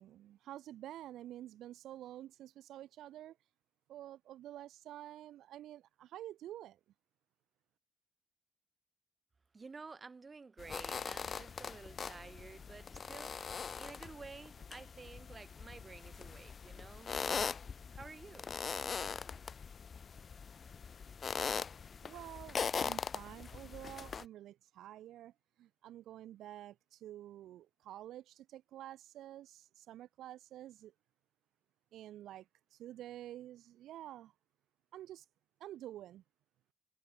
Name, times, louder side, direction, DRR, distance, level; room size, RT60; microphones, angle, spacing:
voice 1, 0.0-3.3 3.9-6.8 22.0-25.3 25.6-30.9 31.9-32.4 32.7-34.3 34.9-35.2 35.6-36.2, right 13 dB, 80° right, 0.4 m, -49 dB
voice 2, 9.5-17.6 17.9-18.5, right 4 dB, 30° right, 1.0 m, -52 dB
sound 1, 10.6-24.2, left 6 dB, 45° left, 0.4 m, -41 dB
cardioid pair, 90°, 0 cm